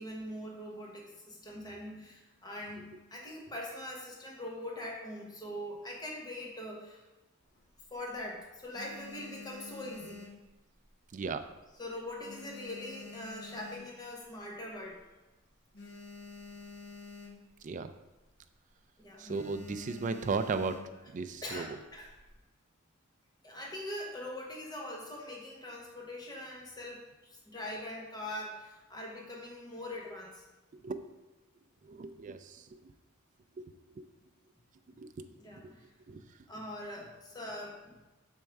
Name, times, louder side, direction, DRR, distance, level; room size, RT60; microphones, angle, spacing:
voice 1, 0.0-7.0 7.9-10.3 11.8-15.0 19.0-19.3 21.4-22.1 23.4-30.4 35.4-36.2 36.5-37.9, left 1 dB, 20° left, -2 dB, 0.9 m, -42 dB
sound 1, 7.4-8.2 8.6-11.1 11.3-11.7 12.0-14.3 14.7-14.8 15.0-15.1 15.4-17.6 18.0-18.2 18.5-18.8 19.2-21.1 21.8-22.4, left 4 dB, 55° left, 1.4 m, -49 dB
voice 2, 11.1-11.5 17.6-17.9 19.2-20.8 21.1-21.8 30.7-31.0 31.8-32.9 33.6-34.1 35.0-35.3 36.1-36.2, right 4 dB, 35° right, 8 dB, 0.3 m, -36 dB
6.3 x 4.5 x 3.4 m, 1.1 s
head